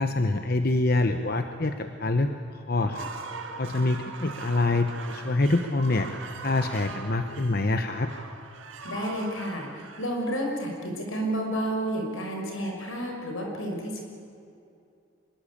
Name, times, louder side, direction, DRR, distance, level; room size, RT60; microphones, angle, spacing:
voice 1, 0.0-3.1 3.6-6.1 6.4-8.1, left 2 dB, 50° left, 7 dB, 1.0 m, -26 dB
sound 1, 2.7-10.9, right 4 dB, 75° right, 2.0 m, -41 dB
voice 2, 8.8-14.0, right 1 dB, 85° left, 2 dB, 5.8 m, -31 dB
25.0 x 22.5 x 8.7 m, 2.5 s
head